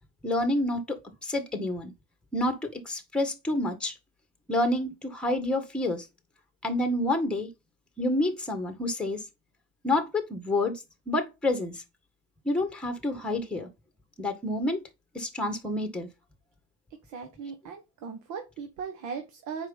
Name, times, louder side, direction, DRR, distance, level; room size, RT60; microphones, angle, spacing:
voice 1, 0.2-1.9 2.3-3.9 4.5-6.1 6.6-7.5 8.0-9.2 9.8-11.8 12.5-13.7 14.2-14.9 15.1-16.1, left 1 dB, 5° left, 1.7 m, -28 dB
voice 2, 17.0-19.7, right 6 dB, 70° right, 1.7 m, -38 dB
7.5 x 5.0 x 4.1 m
cardioid pair, 105°, 31 cm